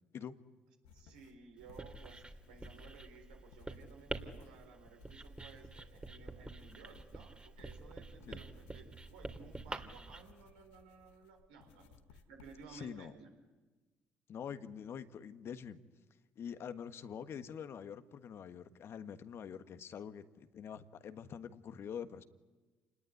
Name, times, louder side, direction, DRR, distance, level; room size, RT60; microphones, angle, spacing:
sound 1, 0.8-12.9, left 6 dB, 80° left, 1.7 m, -63 dB
voice 1, 0.9-13.3, right 5 dB, 85° right, 3 dB, 4.3 m, -57 dB
Writing, 1.6-10.2, right 2 dB, 20° right, 3.0 m, -47 dB
voice 2, 12.7-13.1 14.3-15.8 16.3-22.2, left 7 dB, 55° left, 10 dB, 1.5 m, -45 dB
29.0 x 20.0 x 9.9 m, 1.3 s
hypercardioid pair, 50°, 5 cm